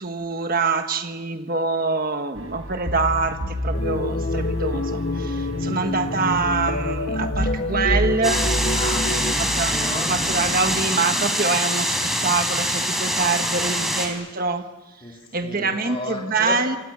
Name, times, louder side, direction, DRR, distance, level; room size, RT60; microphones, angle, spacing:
voice 1, 0.0-8.5 9.4-9.7 10.0-12.0 12.2-14.6 15.3-16.8, right 4 dB, 40° right, 6 dB, 1.4 m, -25 dB
sound 1, 2.3-10.8, equal, 65° right, 5.3 m, -29 dB
sound 2, 3.7-9.3, left 2 dB, 45° left, 0.9 m, -28 dB
sound 3, 8.2-14.1, equal, ahead, 4.3 m, -24 dB
voice 2, 8.7-10.2 15.0-16.6, left 2 dB, 25° left, -1 dB, 4.1 m, -33 dB
29.0 x 26.5 x 7.5 m, 1.1 s
head